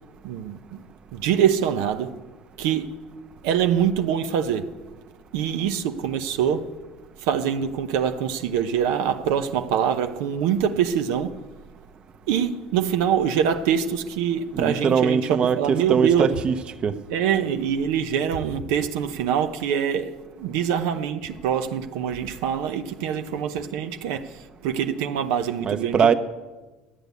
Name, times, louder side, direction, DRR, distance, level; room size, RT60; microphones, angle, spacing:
voice 1, 0.2-0.8 1.1-2.2 2.6-2.9 3.4-4.7 5.3-6.7 7.2-11.4 12.3-16.3 17.1-26.1, right 8 dB, 90° right, 0.9 m, -24 dB
voice 2, 14.5-16.9 25.6-26.1, right 6 dB, 40° right, 0.9 m, -22 dB
14.0 x 9.4 x 8.3 m
cardioid pair, 110°, 2 cm